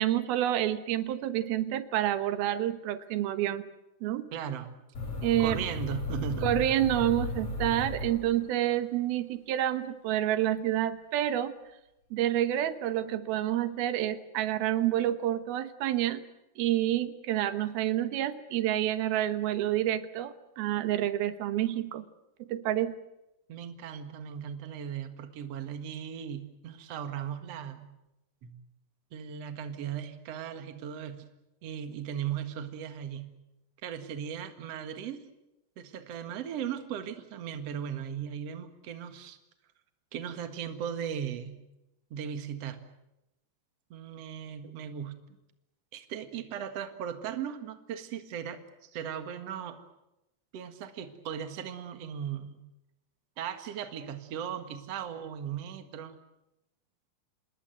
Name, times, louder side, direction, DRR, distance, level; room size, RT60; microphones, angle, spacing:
voice 1, 0.0-3.6 4.0-4.3 5.2-5.6 6.4-11.5 12.1-16.2 16.6-22.1 22.4-23.0, right 12 dB, 90° right, 11 dB, 3.1 m, -28 dB
voice 2, 4.3-4.7 5.4-6.4 23.5-27.9 28.4-28.5 29.1-31.3 31.6-33.3 33.8-35.2 35.8-39.4 40.1-41.6 42.1-42.8 43.9-45.2 45.9-49.8 50.5-52.6 53.4-56.2, right 8 dB, 50° right, 8 dB, 2.4 m, -37 dB
sound 1, 4.9-8.7, left 3 dB, 50° left, 7.0 m, -35 dB
27.5 x 20.0 x 8.1 m, 0.93 s
omnidirectional pair, 4.2 m